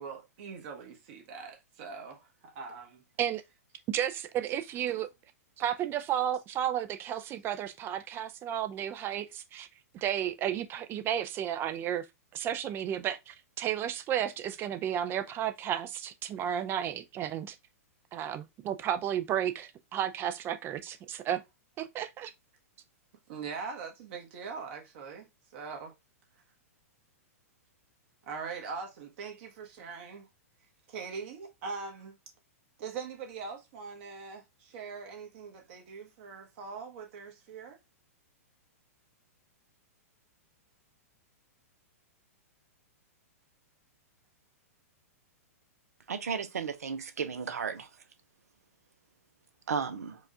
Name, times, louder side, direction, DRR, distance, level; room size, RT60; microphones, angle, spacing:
voice 1, 0.0-3.0 4.9-5.0 23.3-25.3 25.5-25.9 28.3-30.3 30.9-32.2 32.8-37.8, right 5 dB, 50° right, 1.2 m, -42 dB
voice 2, 3.9-5.1 5.6-9.7 9.9-12.0 12.3-17.6 18.1-21.4 21.8-22.3, right 10 dB, 30° right, 0.4 m, -33 dB
voice 3, 46.1-47.9 49.7-50.2, right 6 dB, 80° right, 0.7 m, -34 dB
4.7 x 2.4 x 2.7 m
hypercardioid pair, 120°, 8 cm